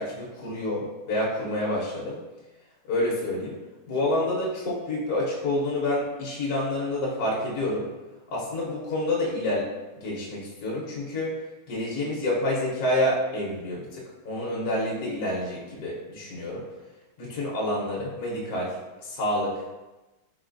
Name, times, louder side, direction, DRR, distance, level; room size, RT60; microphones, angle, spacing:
voice 1, 0.0-2.2 2.9-3.6 3.9-7.9 8.3-9.7 10.0-11.3 11.7-16.7 17.2-18.7 19.0-19.6, left 1 dB, 60° left, -5 dB, 1.2 m, -28 dB
4.2 x 4.0 x 2.5 m, 1.1 s
omnidirectional pair, 2.3 m